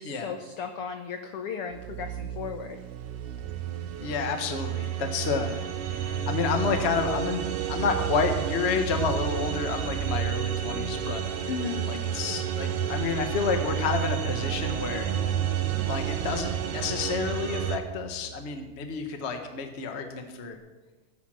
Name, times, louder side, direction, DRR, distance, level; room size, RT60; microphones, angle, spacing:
voice 1, 0.0-2.8 11.5-11.8, left 6 dB, 80° left, 6 dB, 1.3 m, -35 dB
sound 1, 1.7-19.1, right 13 dB, 85° right, 2.1 m, -37 dB
sound 2, 3.4-17.8, right 8 dB, 60° right, 1.6 m, -31 dB
voice 2, 4.0-11.2 11.8-15.1 15.9-20.6, left 5 dB, 50° left, 5 dB, 0.7 m, -30 dB
16.0 x 9.6 x 6.2 m, 1.2 s
omnidirectional pair, 3.6 m